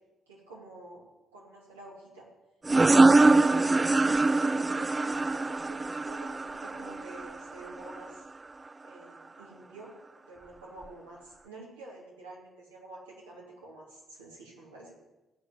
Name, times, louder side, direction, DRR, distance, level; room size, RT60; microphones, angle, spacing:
voice 1, 0.3-2.3 2.9-8.2 8.8-9.9 10.2-15.0, right 2 dB, 85° right, -6 dB, 3.2 m, -48 dB
sound 1, 2.7-8.0, right 3 dB, 25° right, 0.4 m, -23 dB
15.5 x 5.6 x 8.1 m, 1.1 s
figure-of-eight pair, 45°, 0 cm